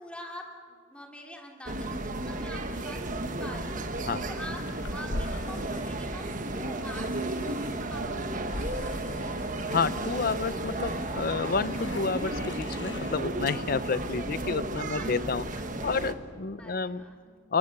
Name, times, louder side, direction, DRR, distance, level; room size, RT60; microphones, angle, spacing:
voice 1, 0.0-3.9 4.2-4.6 4.9-7.1 7.5-9.4 13.9-14.1 14.3-15.4 16.6-17.5, left 1 dB, 5° left, 0 dB, 2.9 m, -46 dB
sound 1, 1.7-16.1, right 2 dB, 45° right, 1.4 m, -33 dB
sound 2, 2.4-13.2, left 2 dB, 65° left, 1.2 m, -43 dB
sound 3, 3.7-8.2, right 4 dB, 60° right, 1.7 m, -48 dB
voice 2, 9.7-15.4 15.8-17.0 17.5-17.6, left 4 dB, 50° left, 16 dB, 0.6 m, -30 dB
28.5 x 23.0 x 6.7 m, 2.1 s
head